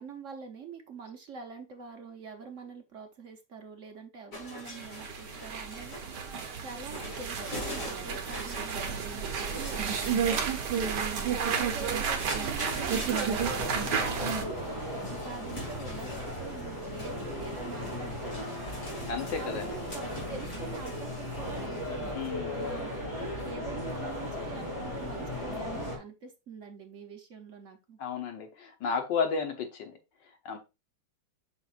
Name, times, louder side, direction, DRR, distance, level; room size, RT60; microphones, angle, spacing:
voice 1, 0.0-6.0 6.6-18.4 19.3-22.2 22.5-22.9 23.4-28.0, right 5 dB, 50° right, 1.1 m, -45 dB
sound 1, 4.3-21.7, left 1 dB, 45° left, 2.9 m, -45 dB
sound 2, 4.7-14.4, right 6 dB, 70° right, 1.6 m, -31 dB
sound 3, 13.3-26.0, left 1 dB, 15° left, 2.4 m, -36 dB
voice 2, 19.1-19.7 22.1-22.5 28.0-29.9 30.5-30.6, left 5 dB, 80° left, 1.8 m, -32 dB
7.1 x 6.3 x 2.5 m
omnidirectional pair, 1.9 m